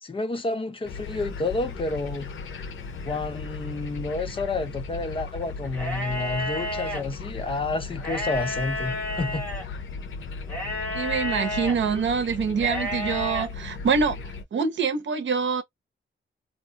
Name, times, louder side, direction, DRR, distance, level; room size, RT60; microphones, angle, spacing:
voice 1, 0.0-2.3 3.1-9.4, left 3 dB, 25° left, 0.7 m, -30 dB
sound 1, 0.9-14.4, left 4 dB, 85° left, 0.7 m, -37 dB
sound 2, 5.7-7.0 7.9-9.6 10.5-11.7 12.6-13.5, left 1 dB, 10° left, 1.4 m, -31 dB
voice 2, 10.9-14.2 14.5-15.6, right 5 dB, 70° right, 0.8 m, -25 dB
2.6 x 2.4 x 3.9 m
wide cardioid pair, 160°, 20 cm